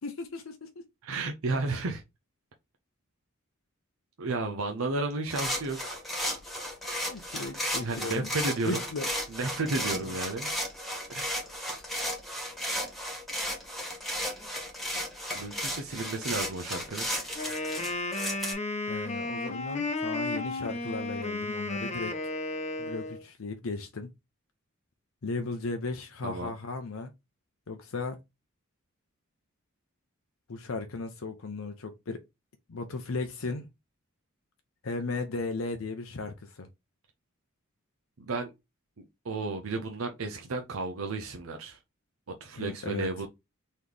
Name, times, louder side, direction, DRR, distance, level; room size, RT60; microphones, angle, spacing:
voice 1, 0.0-0.7 6.8-8.3 8.6-9.1 9.8-10.1 18.9-22.1 22.8-24.1 25.2-27.1 27.7-28.2 30.5-32.2 32.7-33.7 34.8-36.7 42.6-43.1, left 3 dB, 75° left, 0.7 m, -36 dB
voice 2, 1.0-2.0 4.2-5.8 7.8-8.8 9.3-10.5 11.1-11.5 15.3-17.1 26.2-26.5 38.2-38.5 39.0-41.8 42.3-43.3, right 3 dB, 80° right, 0.7 m, -33 dB
sound 1, 5.3-18.5, equal, ahead, 1.5 m, -34 dB
Wind instrument woodwind instrument, 17.3-23.2, left 2 dB, 35° left, 0.9 m, -33 dB
4.1 x 3.1 x 3.4 m
head